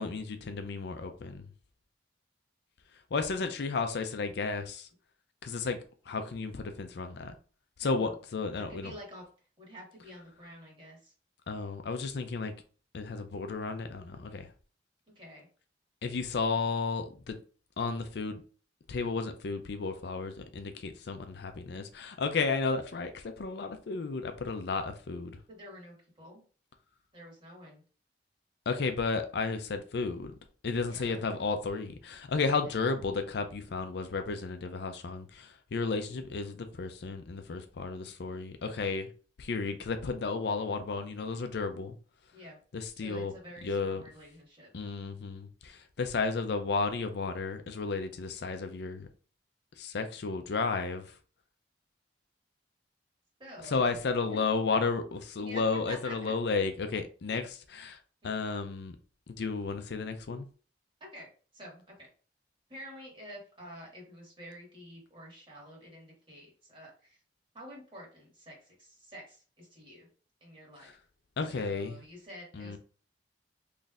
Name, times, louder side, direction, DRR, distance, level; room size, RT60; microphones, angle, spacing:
voice 1, 0.0-1.5 3.1-4.9 5.4-5.8 6.1-7.3 7.8-8.9 11.5-12.5 12.9-14.5 16.0-17.4 17.8-18.4 18.9-25.4 28.7-30.4 30.6-39.1 39.4-41.9 42.7-43.3 43.6-44.0 44.7-49.1 49.8-51.1 53.6-58.0 58.2-59.0 59.3-60.5 70.8-70.9 71.4-72.0 72.5-72.8, left 4 dB, 65° left, 0.5 m, -33 dB
voice 2, 7.8-8.1 8.6-9.3 9.6-11.1 15.2-15.5 25.5-26.4 27.1-27.8 30.8-31.3 32.6-32.8 42.3-42.6 42.9-44.7 53.4-54.0 54.3-54.4 55.4-56.3 58.2-58.3 61.1-62.1 62.7-67.2 67.5-70.1 70.4-71.0 71.4-72.8, equal, 30° right, 1.8 m, -49 dB
4.0 x 3.2 x 2.4 m
head